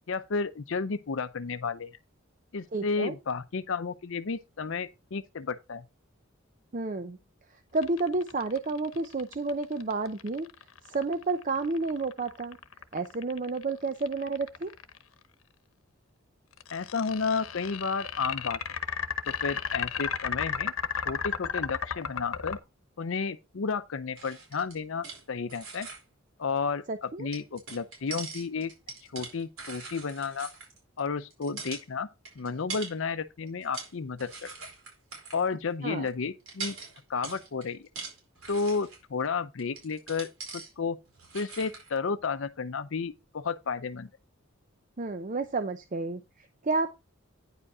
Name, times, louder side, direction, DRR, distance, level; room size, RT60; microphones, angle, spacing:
voice 1, 0.1-1.9 2.5-5.8 16.7-18.6 19.3-22.6 23.0-25.9 26.4-28.7 29.1-30.5 31.0-32.1 32.4-34.5 35.3-36.7 37.1-37.9 38.5-41.0 41.3-44.1, left 5 dB, 70° left, 0.6 m, -32 dB
voice 2, 2.7-3.2 6.7-7.2 7.7-10.5 10.8-12.6 12.9-14.7 26.9-27.3 35.8-36.1 45.0-46.9, right 3 dB, 40° right, 0.6 m, -31 dB
sound 1, 7.8-15.0 16.6-22.6, left 7 dB, 90° left, 1.0 m, -34 dB
sound 2, 24.2-25.2 25.5-26.0 27.3-31.0 31.3-31.8 32.2-33.0 33.5-33.9 34.2-35.4 36.1-36.2 36.5-39.0 39.6-40.7 41.1-41.9, right 4 dB, 90° right, 4.6 m, -42 dB
9.8 x 5.1 x 4.7 m
head